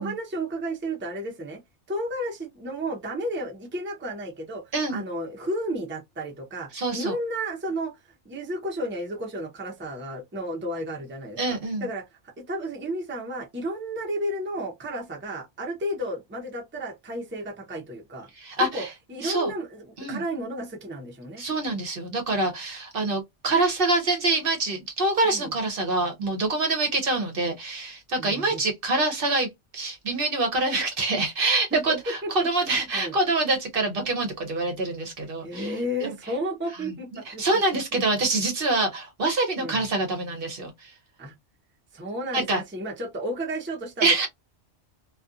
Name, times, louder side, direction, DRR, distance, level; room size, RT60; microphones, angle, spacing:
voice 1, 0.0-1.6 1.9-8.0 8.2-18.3 18.6-21.4 25.2-25.5 28.2-28.6 31.7-33.2 35.4-37.6 37.9-38.1 39.6-39.8 41.2-41.3 41.9-44.3, right 1 dB, 15° right, 0.5 m, -33 dB
voice 2, 4.7-5.0 6.7-7.1 11.4-11.8 18.4-18.9 19.2-19.5 20.0-20.2 21.4-35.7 36.0-36.1 37.3-40.9 42.3-42.6 44.0-44.3, right 2 dB, 55° right, 0.8 m, -25 dB
2.4 x 2.3 x 2.5 m
omnidirectional pair, 1.2 m